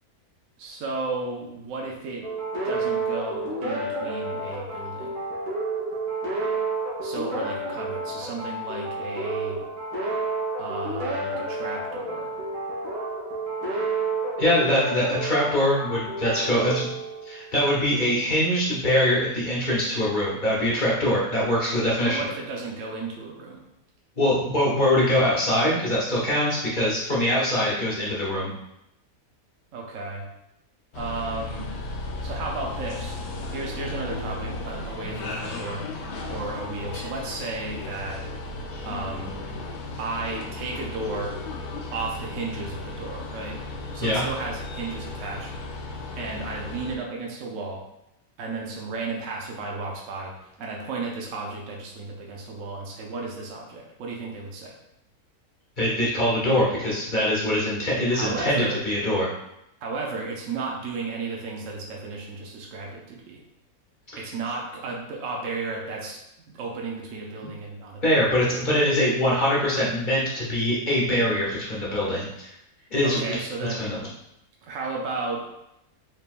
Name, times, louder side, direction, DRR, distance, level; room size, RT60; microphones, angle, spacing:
voice 1, 0.6-2.3 2.6-5.1 7.0-9.6 10.6-12.4 22.0-23.6 29.7-30.3 30.9-31.7 32.2-33.2 33.5-35.8 36.3-38.2 38.8-39.4 40.0-41.4 41.9-43.6 43.9-45.5 46.2-47.8 48.4-54.8 58.1-58.8 59.8-63.4 64.2-68.3 73.0-73.9 74.6-75.4, right 3 dB, 65° right, -1 dB, 1.0 m, -34 dB
sound 1, 2.2-17.6, right 2 dB, 90° right, 1.6 m, -30 dB
voice 2, 14.4-16.9 17.2-22.2 24.2-28.5 44.0-44.2 55.8-59.3 64.1-64.2 68.0-72.5 72.9-73.4 73.8-73.9, left 1 dB, 35° left, -6 dB, 1.2 m, -23 dB
sound 2, 30.9-47.0, left 2 dB, 85° left, 1.1 m, -35 dB
4.5 x 3.4 x 2.5 m, 0.83 s
omnidirectional pair, 1.6 m